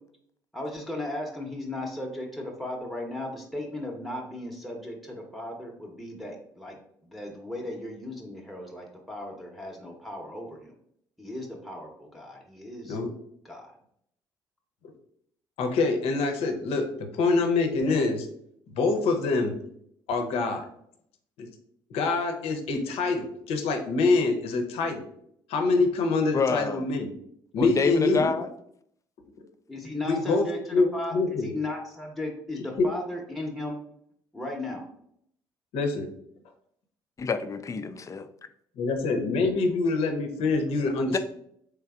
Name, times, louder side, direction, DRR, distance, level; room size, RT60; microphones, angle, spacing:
voice 1, 0.5-6.7 7.0-10.7 11.2-13.0 13.4-13.7 29.7-31.1 31.4-33.8 34.3-34.9, left 1 dB, ahead, -1 dB, 0.8 m, -36 dB
voice 2, 15.6-18.3 18.8-19.5 20.1-20.7 21.4-21.5 21.9-25.1 25.5-27.1 27.5-28.2 30.1-31.5 32.8-32.9 35.7-36.1 38.8-41.2, left 3 dB, 65° left, 5 dB, 0.6 m, -25 dB
voice 3, 26.3-26.9 27.6-28.5 37.2-38.3 41.1-41.2, left 5 dB, 30° left, 10 dB, 0.4 m, -27 dB
3.3 x 3.3 x 2.3 m, 0.70 s
hypercardioid pair, 55°, 11 cm